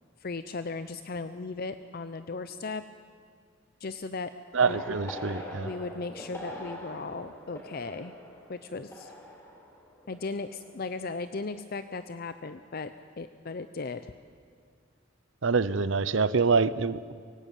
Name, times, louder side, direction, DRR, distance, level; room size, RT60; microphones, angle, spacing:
voice 1, 0.2-2.8 3.8-4.3 4.6-5.0 5.6-8.1 8.5-9.1 10.1-14.1, left 3 dB, 45° left, 11 dB, 0.6 m, -37 dB
voice 2, 4.5-5.7 15.4-17.1, right 4 dB, 65° right, 17 dB, 0.7 m, -25 dB
sound 1, 4.6-11.0 11.3-11.6, left 1 dB, 15° left, 4.0 m, -44 dB
24.5 x 16.5 x 9.4 m, 2.2 s
head